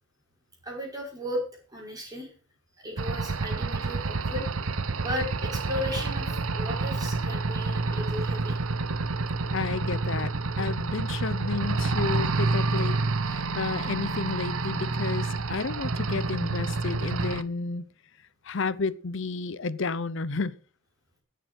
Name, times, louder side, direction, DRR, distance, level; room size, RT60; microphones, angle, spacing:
voice 1, 0.6-1.4 1.7-2.3 2.8-4.4 5.0-8.6, left 1 dB, 20° right, 5.2 m, -35 dB
sound 1, 3.0-17.4, right 3 dB, 75° right, 1.0 m, -28 dB
voice 2, 9.5-10.3 10.6-13.0 13.2-17.8 18.4-20.5, left 4 dB, 60° left, 0.7 m, -31 dB
15.0 x 6.9 x 6.4 m
head